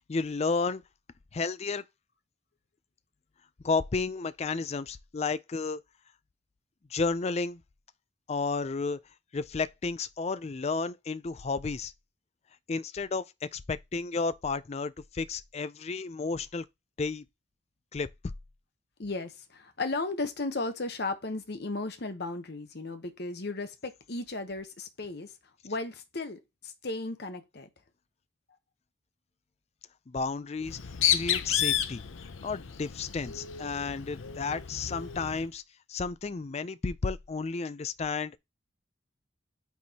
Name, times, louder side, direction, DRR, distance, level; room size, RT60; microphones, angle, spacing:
voice 1, 0.1-0.8 1.3-1.8 3.6-5.8 6.9-7.6 8.3-9.0 9.3-11.9 12.7-16.6 17.0-17.2 17.9-18.1 30.1-30.8 31.1-32.0 32.4-35.6 35.9-38.4, left 4 dB, 35° left, 0.4 m, -32 dB
voice 2, 19.0-25.4 25.6-27.7, left 2 dB, 55° left, 1.0 m, -35 dB
Bird, 30.6-35.5, left 10 dB, 90° left, 0.7 m, -31 dB
9.3 x 4.7 x 2.8 m
head